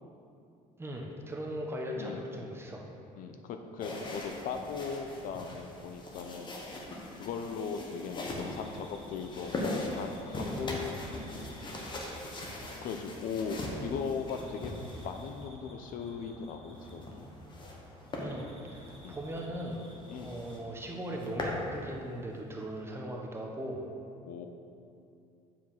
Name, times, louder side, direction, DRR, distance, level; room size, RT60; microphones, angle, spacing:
voice 1, 0.8-2.9 18.2-23.8, equal, 15° right, 0 dB, 1.0 m, -39 dB
voice 2, 2.0-2.3 3.2-6.5 7.2-11.0 12.8-14.7 15.0-17.3 19.0-19.2 20.1-20.4 24.3-24.5, left 6 dB, 60° left, 6 dB, 0.6 m, -38 dB
sound 1, 3.8-15.5 16.8-17.8 18.1-18.3 18.8-19.0 19.4-19.5 19.7-19.8 20.1-20.6 21.0-21.6, left 2 dB, 30° left, 1.1 m, -40 dB
sound 2, 7.9-20.6, equal, ahead, 1.7 m, -53 dB
7.4 x 4.7 x 5.6 m, 2.6 s
cardioid pair, 120°, 16 cm